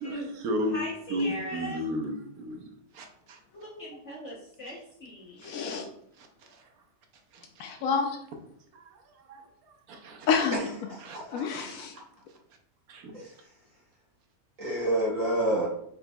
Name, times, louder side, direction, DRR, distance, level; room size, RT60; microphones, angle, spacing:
voice 1, 0.0-0.8 1.1-2.6 2.9-3.4 5.4-5.6 6.2-6.3 6.5-6.6 7.3-7.7 8.7-8.8 9.3-9.4 9.9-10.3 11.0-11.2 12.9-13.1, equal, 65° right, 4 dB, 1.1 m, -33 dB
voice 2, 0.7-1.8 3.5-5.4, equal, 50° left, -5 dB, 1.2 m, -39 dB
voice 3, 5.4-5.9 7.6-8.2 10.3-10.7 11.3-11.9, left 6 dB, 70° left, 4 dB, 0.8 m, -28 dB
voice 4, 10.5-11.2 13.1-13.3 14.6-15.7, right 1 dB, 50° right, -6 dB, 2.0 m, -28 dB
5.0 x 4.6 x 2.3 m, 0.72 s
omnidirectional pair, 1.9 m